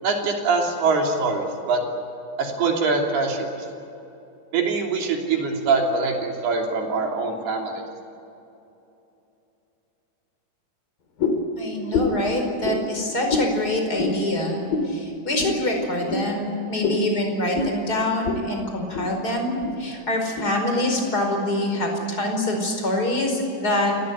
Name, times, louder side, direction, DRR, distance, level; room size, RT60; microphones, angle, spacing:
voice 1, 0.0-1.8 2.4-3.5 4.5-7.8, right 4 dB, 75° right, 1 dB, 5.1 m, -23 dB
sound 1, 11.2-11.5 11.9-12.2 12.6-12.8 13.3-13.5 14.0-14.2 14.7-14.9 15.4-15.6 16.1-16.2 16.8-17.0 17.5-17.7 18.2-18.4 18.7-19.1 19.6-19.8 20.4-20.5, left 4 dB, 60° left, 4.4 m, -25 dB
voice 2, 11.6-24.0, left 1 dB, 20° left, 3 dB, 5.1 m, -25 dB
30.0 x 17.5 x 9.5 m, 2.8 s
omnidirectional pair, 4.6 m